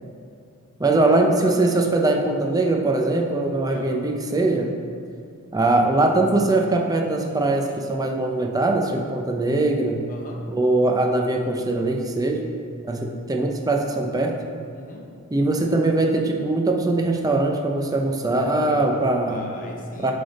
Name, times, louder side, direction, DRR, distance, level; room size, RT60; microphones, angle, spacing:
voice 1, 0.8-4.7 5.5-10.0 10.5-12.5 12.8-14.3 15.3-19.5 20.0-20.1, right 2 dB, 15° right, 2 dB, 0.5 m, -21 dB
voice 2, 10.1-10.4 14.7-15.1 18.6-20.1, left 2 dB, 40° left, 1 dB, 0.7 m, -37 dB
7.5 x 3.4 x 4.0 m, 2.5 s
head